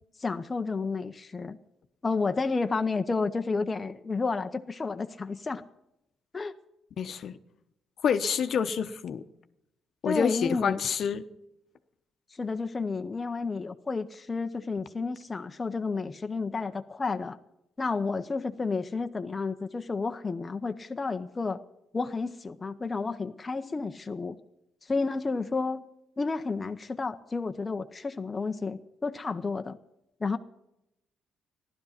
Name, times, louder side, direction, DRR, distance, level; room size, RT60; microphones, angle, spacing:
voice 1, 0.2-1.6 2.0-5.6 6.3-6.5 10.0-10.8 12.3-17.4 17.8-21.6 21.9-24.4 24.8-25.8 26.2-29.8 30.2-30.4, left 4 dB, 25° left, 7 dB, 0.7 m, -31 dB
voice 2, 7.0-7.4 8.0-9.2 10.0-11.2, left 7 dB, 60° left, 9 dB, 0.9 m, -28 dB
15.0 x 12.0 x 5.8 m, 0.84 s
cardioid pair, 90°, 0 cm